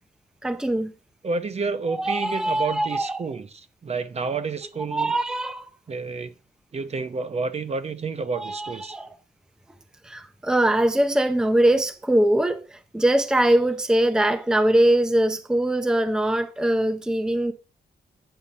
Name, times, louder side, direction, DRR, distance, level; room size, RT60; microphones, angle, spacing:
voice 1, 0.4-0.9 1.9-3.3 4.9-5.7 8.3-9.1 10.0-17.5, right 1 dB, 5° right, 0.6 m, -22 dB
voice 2, 1.2-5.1 5.9-6.3 6.7-9.0, right 4 dB, 40° right, 0.8 m, -30 dB
9.0 x 5.6 x 5.1 m
wide cardioid pair, 125°, 17 cm